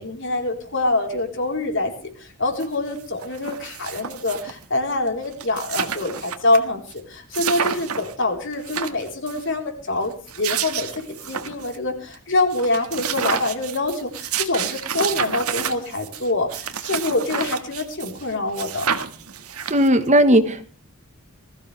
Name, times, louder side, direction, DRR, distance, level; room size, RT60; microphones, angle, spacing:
voice 1, 0.0-1.9 2.2-10.1 10.4-18.9, left 2 dB, 55° left, 3 dB, 4.2 m, -25 dB
sound 1, 2.6-2.7 3.0-4.6 5.1-5.2 5.3-6.6 6.9-7.0 7.3-8.1 8.5-9.4 10.1-11.8 12.1-12.2 12.5-18.3 18.5-20.1, right 7 dB, 80° right, 1.7 m, -29 dB
voice 2, 19.7-20.7, right 1 dB, 30° right, 9 dB, 1.4 m, -16 dB
21.0 x 15.0 x 3.4 m, 0.39 s
head